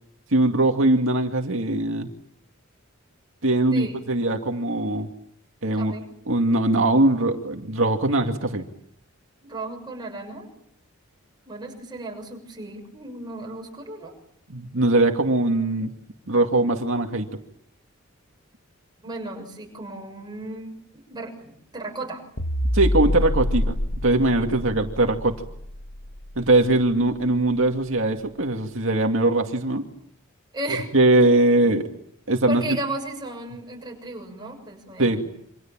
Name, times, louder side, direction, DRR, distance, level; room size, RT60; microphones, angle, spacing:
voice 1, 0.3-2.1 3.4-5.1 5.6-5.9 6.3-8.6 14.5-15.9 16.3-17.3 22.7-23.8 24.0-25.3 26.4-29.8 30.9-31.9 32.3-32.8 35.0-35.2, right 2 dB, 65° right, 3 dB, 2.4 m, -21 dB
voice 2, 3.7-4.0 5.7-6.0 9.4-10.5 11.5-14.2 19.0-22.2 30.5-30.9 32.5-35.3, right 1 dB, 20° right, 1 dB, 6.9 m, -35 dB
sound 1, 22.4-26.9, left 1 dB, 85° left, 1.9 m, -27 dB
28.0 x 26.0 x 7.5 m, 0.73 s
head